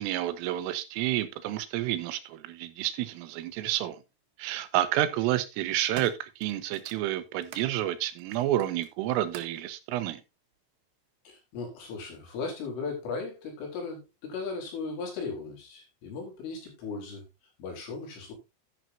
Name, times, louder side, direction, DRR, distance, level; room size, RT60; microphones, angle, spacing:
voice 1, 0.0-4.0 4.4-10.2, right 13 dB, 90° right, 3.7 m, -30 dB
sound 1, 3.3-3.4 4.5-4.9 5.4-7.7 8.2-9.7 10.5-10.6, right 8 dB, 65° right, 3.3 m, -47 dB
voice 2, 11.2-17.3 17.6-18.3, left 4 dB, 70° left, 6.7 m, -37 dB
10.5 x 10.5 x 2.7 m
omnidirectional pair, 5.8 m